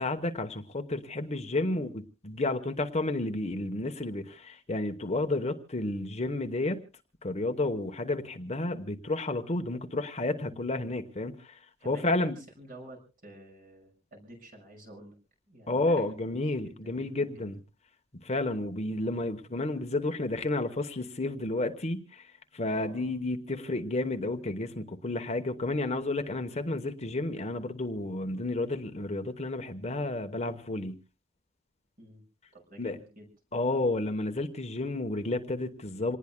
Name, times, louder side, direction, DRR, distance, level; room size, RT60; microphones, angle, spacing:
voice 1, 0.0-6.8 7.2-11.6 11.8-12.3 15.7-17.6 18.2-31.0 32.8-33.0 33.5-36.2, left 2 dB, 30° left, 7 dB, 1.0 m, -31 dB
voice 2, 11.8-12.3 12.6-15.2 15.5-17.5 22.7-23.1 26.7-26.9 32.0-32.2 32.5-33.3, right 1 dB, 45° right, 3 dB, 6.3 m, -50 dB
27.5 x 19.5 x 2.2 m, 0.33 s
head